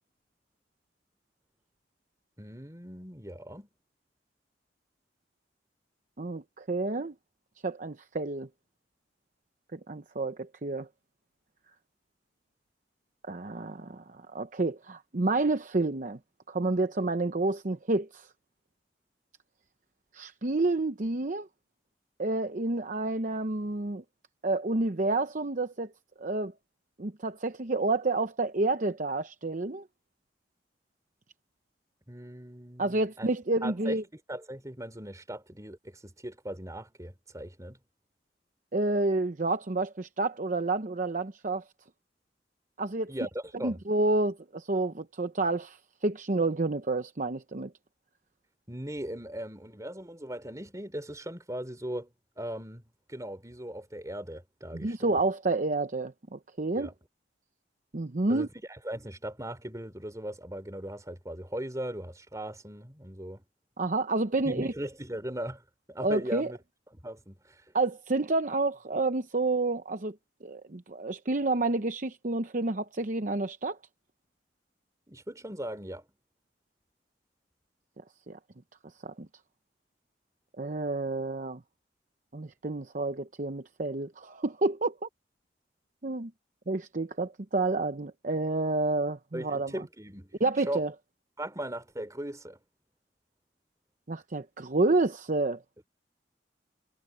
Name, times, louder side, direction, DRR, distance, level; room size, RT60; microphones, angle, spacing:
voice 1, 2.4-3.7 32.1-33.4 33.6-34.0 34.3-37.8 43.1-43.8 48.7-55.2 56.7-56.9 58.3-63.4 64.4-66.6 66.9-67.7 75.1-76.0 89.3-90.3 90.7-90.8 91.4-92.6, right 1 dB, 20° right, 3.9 m, -39 dB
voice 2, 6.2-7.1 7.6-8.5 9.7-10.9 13.3-16.2 16.5-18.3 20.1-21.5 22.2-24.0 24.4-25.9 26.2-26.5 27.0-29.8 32.8-34.0 38.7-41.6 42.8-43.3 43.6-47.7 54.7-56.9 57.9-58.5 63.8-64.7 66.0-66.5 67.7-70.2 70.4-73.8 78.3-78.4 79.0-79.1 80.6-81.6 82.3-85.1 86.0-86.3 86.7-89.7 90.4-90.9 94.1-95.6, right 2 dB, 45° right, 0.8 m, -29 dB
head